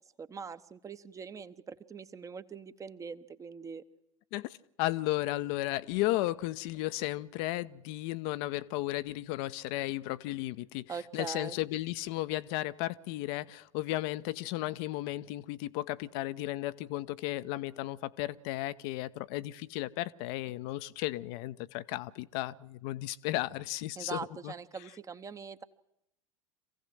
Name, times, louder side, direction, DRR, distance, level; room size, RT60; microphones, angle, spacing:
voice 1, 0.2-3.8 10.9-11.6 24.0-25.6, right 5 dB, 20° right, 13 dB, 1.0 m, -42 dB
voice 2, 4.3-24.5, left 17 dB, 45° left, 14 dB, 0.8 m, -34 dB
26.5 x 16.0 x 7.7 m, 0.82 s
figure-of-eight pair, 85°, 17 cm